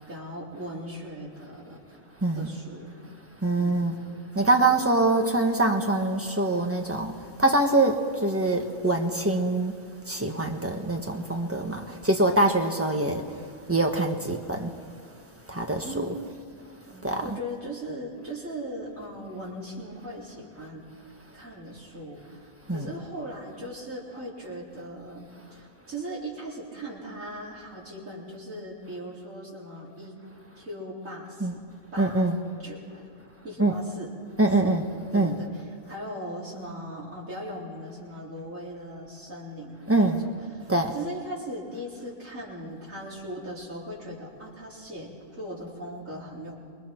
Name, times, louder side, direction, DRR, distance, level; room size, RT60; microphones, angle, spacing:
voice 1, 0.1-1.8 2.3-3.0 3.6-3.8 4.6-4.7 15.7-16.1 16.9-20.9 21.3-30.2 30.6-31.6 31.9-32.3 32.6-33.1 33.4-34.2 34.6-34.8 35.1-35.5 35.9-40.1 40.6-46.6, right 1 dB, 80° right, 4.4 m, -39 dB
voice 2, 2.2-2.5 3.4-4.0 4.3-9.7 10.1-14.7 15.5-16.1 17.0-17.4 22.7-23.0 31.4-31.6 32.0-32.4 33.6-33.8 34.4-35.4 39.9-40.2 40.7-41.0, right 2 dB, 10° right, 1.4 m, -24 dB
28.0 x 21.0 x 4.6 m
omnidirectional pair, 1.4 m